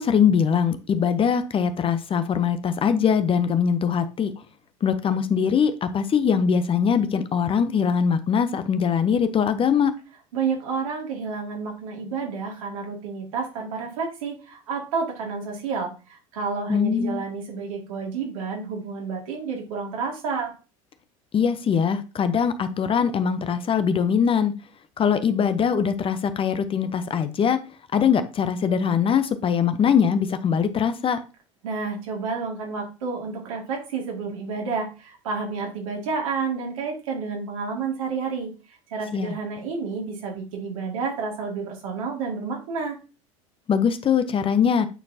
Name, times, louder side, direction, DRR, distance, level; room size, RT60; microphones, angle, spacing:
voice 1, 0.0-4.3 4.8-9.9 16.7-17.2 21.3-24.5 25.0-27.6 27.9-31.2 39.1-39.4 43.7-44.9, left 7 dB, 30° left, 0.8 m, -22 dB
voice 2, 10.3-20.5 31.6-38.5 38.9-43.0, right 5 dB, 75° right, 2.4 m, -30 dB
9.0 x 4.4 x 2.9 m
hypercardioid pair, 85°, 17 cm